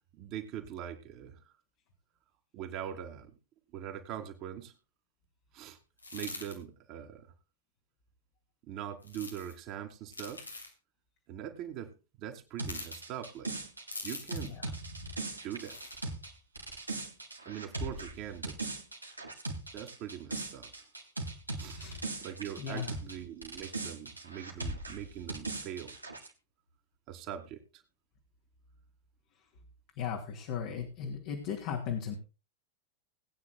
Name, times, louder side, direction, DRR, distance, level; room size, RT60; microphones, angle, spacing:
voice 1, 0.1-1.5 2.5-3.3 3.7-4.7 5.5-5.8 6.1-7.3 8.6-10.5 11.3-13.5 14.0-14.7 15.4-15.8 17.4-18.6 19.7-20.7 21.6-21.8 22.2-26.0 27.1-27.8, right 10 dB, 40° right, 4 dB, 2.8 m, -42 dB
sound 1, 6.0-6.6 9.0-9.5 10.1-10.7 12.6-13.0 13.9-14.5 15.6-16.0, left 2 dB, 80° left, 2.7 m, -43 dB
sound 2, 12.6-23.2 23.4-26.3, right 2 dB, 85° right, 2.5 m, -39 dB
voice 2, 14.4-14.7 21.7-22.0 22.6-23.0 30.0-32.2, left 7 dB, 45° left, 1 dB, 2.5 m, -37 dB
20.0 x 9.6 x 2.2 m, 0.31 s
figure-of-eight pair, 90°, 0 cm